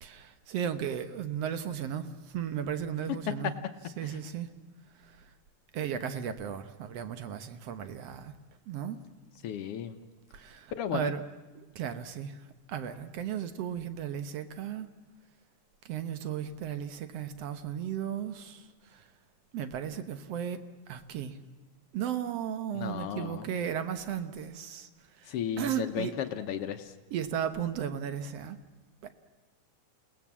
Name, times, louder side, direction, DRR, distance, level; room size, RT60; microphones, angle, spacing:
voice 1, 0.0-3.5 4.0-4.5 5.0-5.3 5.7-8.3 8.7-9.0 10.3-11.2 11.6-12.4 12.7-14.9 15.9-19.1 19.5-20.6 20.9-21.4 21.9-24.9 25.2-26.1 27.1-28.6 29.0-29.1, right 9 dB, 65° right, 10 dB, 1.8 m, -35 dB
voice 2, 9.4-10.0 10.8-11.1 22.7-23.5 25.3-26.9, left 9 dB, 70° left, 9 dB, 1.4 m, -35 dB
28.5 x 18.5 x 7.3 m, 1.2 s
omnidirectional pair, 3.6 m